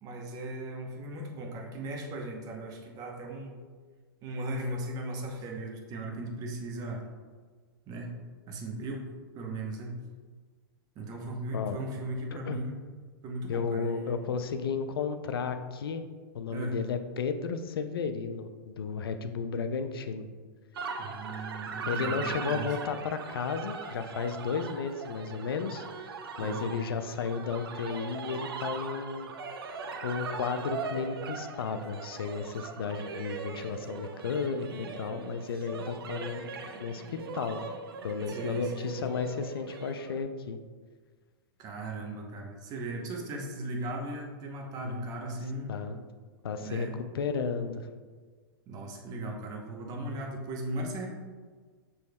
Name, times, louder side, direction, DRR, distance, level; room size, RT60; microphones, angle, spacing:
voice 1, 0.0-3.6 4.2-7.0 7.9-8.1 8.5-9.1 9.3-10.0 11.0-12.8 13.2-14.2 16.5-16.8 21.0-22.7 26.4-26.6 38.3-38.9 41.6-45.7 46.6-46.9 48.7-51.1, right 1 dB, 30° right, 1 dB, 0.8 m, -37 dB
voice 2, 12.3-12.6 13.5-16.0 16.3-20.3 21.9-26.1 26.4-29.3 30.0-36.5 36.8-37.6 38.0-40.6 44.8-45.0 45.7-46.0 46.4-46.9 47.1-47.9, left 5 dB, 90° left, 9 dB, 0.4 m, -33 dB
sound 1, 20.7-40.2, right 5 dB, 85° right, 0.5 m, -40 dB
6.9 x 3.1 x 2.2 m, 1.5 s
hypercardioid pair, 130°, 12 cm